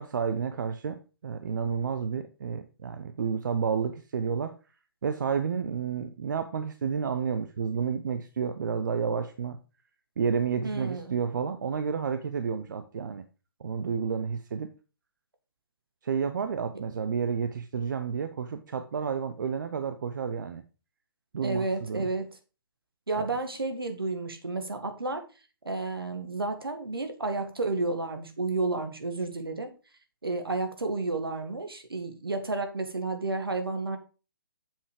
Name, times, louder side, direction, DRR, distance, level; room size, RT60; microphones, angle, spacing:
voice 1, 0.0-4.5 5.0-9.6 10.2-13.2 13.6-14.7 16.0-20.6 21.3-22.1 23.2-23.3, right 6 dB, 55° right, 9 dB, 0.7 m, -30 dB
voice 2, 10.6-11.1 21.4-22.4 23.1-25.3 25.6-29.7 30.2-34.0, right 3 dB, 80° right, 7 dB, 1.8 m, -31 dB
7.3 x 5.6 x 4.8 m, 0.33 s
figure-of-eight pair, 135°, 12 cm